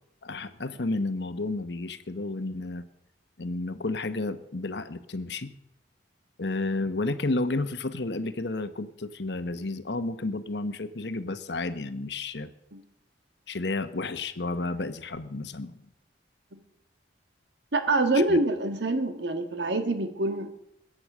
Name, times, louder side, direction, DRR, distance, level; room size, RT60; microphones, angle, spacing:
voice 1, 0.2-2.8 3.4-5.5 6.4-12.5 13.5-15.8 18.1-18.4, left 2 dB, 70° left, 11 dB, 1.0 m, -31 dB
voice 2, 17.7-20.5, right 2 dB, 75° right, 8 dB, 1.5 m, -26 dB
21.0 x 8.8 x 6.1 m, 0.81 s
head